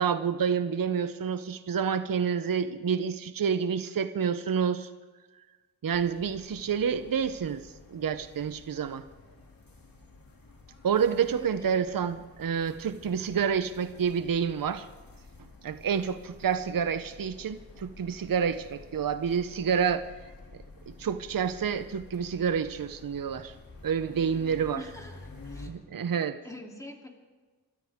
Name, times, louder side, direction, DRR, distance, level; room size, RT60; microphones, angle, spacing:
voice 1, 0.0-4.9 5.8-9.0 10.8-14.9 15.6-20.0 21.0-23.5 23.8-24.8 25.7-26.4, right 7 dB, 60° right, 11 dB, 0.7 m, -28 dB
sound 1, 5.9-25.7, left 3 dB, 60° left, 2.6 m, -50 dB
voice 2, 11.3-11.7 24.7-25.7 26.4-27.1, left 1 dB, 10° left, 1 dB, 2.9 m, -45 dB
29.0 x 13.0 x 3.6 m, 1.3 s
cardioid pair, 55°, 38 cm